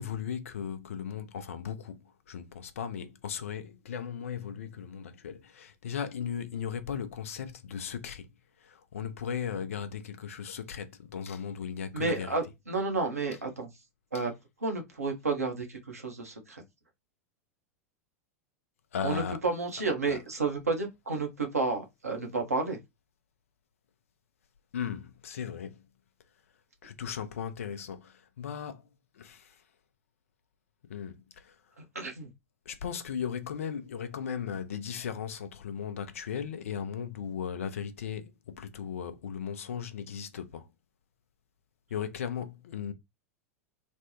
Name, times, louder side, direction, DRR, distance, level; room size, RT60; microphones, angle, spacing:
voice 1, 0.0-2.0 2.3-8.3 8.6-12.3 18.9-19.4 20.1-20.2 24.7-25.8 26.8-28.9 29.2-29.5 30.9-31.5 32.7-40.7 41.9-42.9, left 7 dB, 65° left, 0.5 m, -37 dB
voice 2, 11.9-13.7 14.1-14.3 14.6-16.6 19.0-22.8 31.8-32.3, right 3 dB, 80° right, 0.9 m, -31 dB
3.3 x 2.2 x 2.7 m
figure-of-eight pair, 90°, 8 cm